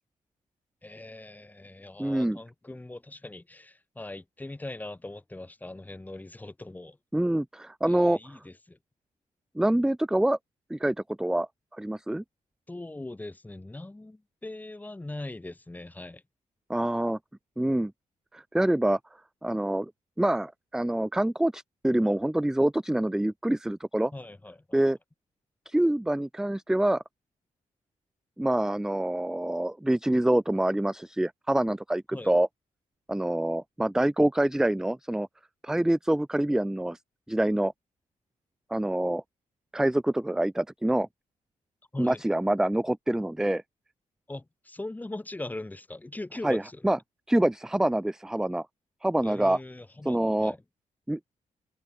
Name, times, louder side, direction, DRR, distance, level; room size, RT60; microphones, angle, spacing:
voice 1, 0.8-7.0 7.9-8.8 12.7-16.2 24.1-24.8 32.1-32.3 41.9-42.2 44.3-46.9 49.2-50.6, left 2 dB, 10° left, 7.2 m, -41 dB
voice 2, 2.0-2.4 7.1-8.4 9.6-10.4 10.7-11.5 11.8-12.2 16.7-17.2 17.6-17.9 18.3-19.0 19.4-19.9 20.2-24.1 24.7-25.0 25.7-27.0 28.4-32.5 33.1-35.3 35.6-37.0 37.3-37.7 38.7-39.2 39.7-41.1 42.0-43.6 46.4-47.0 47.3-48.7 49.0-49.6 50.0-50.6 51.1-51.2, right 1 dB, 5° right, 0.4 m, -26 dB
wide cardioid pair, 150°, 14 cm